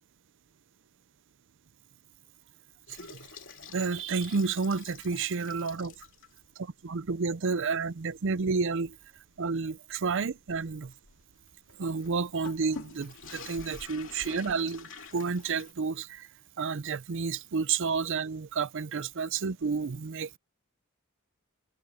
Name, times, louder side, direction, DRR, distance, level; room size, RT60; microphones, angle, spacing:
sound 1, 2.9-6.5 6.9-7.0 7.5-7.6 8.1-15.7, left 4 dB, 60° left, 2.7 m, -48 dB
voice 1, 3.7-5.9 6.8-9.0 9.4-10.9 11.8-16.3 16.6-20.4, right 5 dB, 60° right, 0.6 m, -30 dB
head